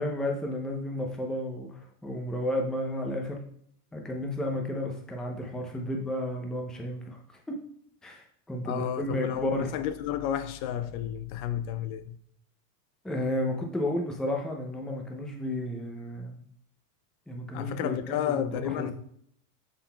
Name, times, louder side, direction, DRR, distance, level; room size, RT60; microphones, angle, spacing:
voice 1, 0.0-3.4 3.9-7.2 7.5-7.6 8.0-9.7 13.0-16.4 17.3-18.9, left 1 dB, ahead, 0.5 m, -32 dB
voice 2, 8.6-12.2 17.5-18.9, left 10 dB, 55° left, 0.5 m, -32 dB
11.0 x 3.9 x 2.2 m
supercardioid pair, 125°, 49 cm